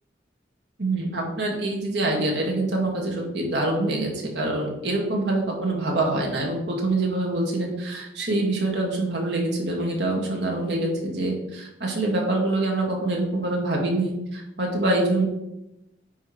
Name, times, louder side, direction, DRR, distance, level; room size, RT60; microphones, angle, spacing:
voice 1, 0.8-15.3, right 2 dB, 75° right, -1 dB, 1.8 m, -25 dB
9.2 x 3.1 x 4.9 m, 0.91 s
head